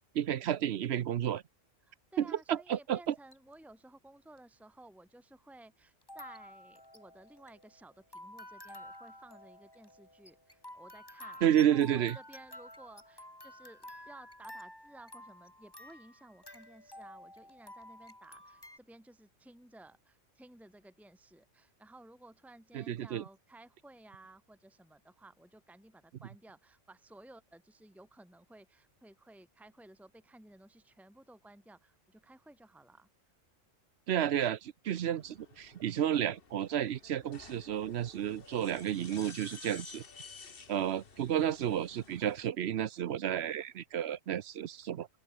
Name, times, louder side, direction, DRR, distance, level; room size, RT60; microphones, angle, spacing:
voice 1, 0.1-1.4 2.2-3.1 11.4-12.2 22.7-23.2 34.1-40.0 40.7-45.1, right 10 dB, 65° right, 0.9 m, -31 dB
voice 2, 1.8-33.1, right 2 dB, ahead, 2.1 m, -56 dB
sound 1, 3.1-3.5 4.4-4.5 6.0-18.8, left 1 dB, 20° left, 5.0 m, -51 dB
sound 2, 34.9-42.5, left 5 dB, 50° left, 1.6 m, -53 dB
open air
omnidirectional pair, 1.3 m